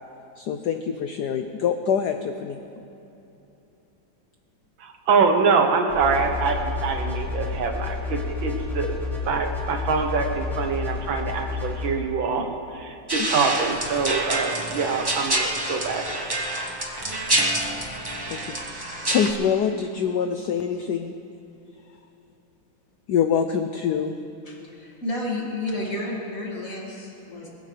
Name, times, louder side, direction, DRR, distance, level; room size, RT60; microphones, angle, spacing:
voice 1, 0.4-2.6 18.3-21.1 23.1-24.2, left 7 dB, 70° left, 7 dB, 1.0 m, -25 dB
voice 2, 4.8-9.0 9.2-12.4 12.7-16.0, right 5 dB, 70° right, 4 dB, 1.9 m, -24 dB
sound 1, 5.9-11.9, left 4 dB, ahead, 3.3 m, -30 dB
sound 2, 13.1-19.3, right 1 dB, 20° right, 0.6 m, -27 dB
voice 3, 24.4-27.5, left 1 dB, 40° left, -3 dB, 2.7 m, -31 dB
21.0 x 16.0 x 3.3 m, 2.9 s
omnidirectional pair, 2.3 m